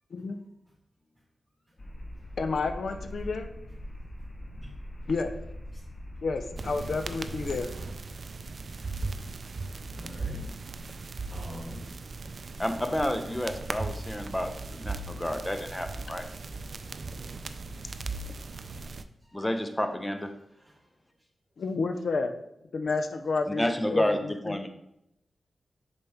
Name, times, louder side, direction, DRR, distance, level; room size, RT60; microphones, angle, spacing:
sound 1, 1.8-7.6, equal, 30° left, 1.0 m, -42 dB
voice 1, 2.4-3.5 5.1-5.3 6.2-7.7 21.6-22.4 22.7-24.6, left 4 dB, 75° left, 7 dB, 0.5 m, -30 dB
sound 2, 6.6-19.0, right 3 dB, 60° right, 0.3 m, -38 dB
voice 2, 9.9-11.0 11.3-12.2 16.6-16.7 19.2-19.4 20.5-20.8, equal, 20° right, -7 dB, 2.2 m, -46 dB
voice 3, 12.6-16.3 19.3-20.3 23.6-24.7, left 1 dB, 15° left, 7 dB, 0.6 m, -30 dB
6.7 x 4.1 x 3.5 m, 0.83 s
cardioid pair, 75°, 0 cm